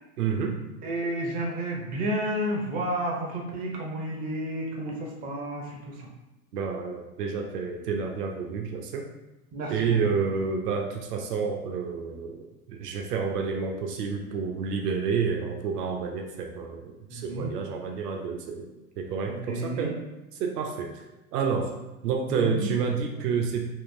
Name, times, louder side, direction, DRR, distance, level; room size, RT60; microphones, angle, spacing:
voice 1, 0.2-0.6 6.5-9.1 9.7-18.7 19.0-20.0 20.3-21.1 21.3-21.7 22.0-23.7, right 5 dB, 80° right, 2 dB, 0.6 m, -29 dB
voice 2, 0.8-6.1 9.5-10.1 17.1-17.5 19.3-19.9 22.3-22.7, right 1 dB, 20° right, 0 dB, 0.4 m, -31 dB
3.6 x 2.4 x 2.5 m, 0.99 s
figure-of-eight pair, 85°, 47 cm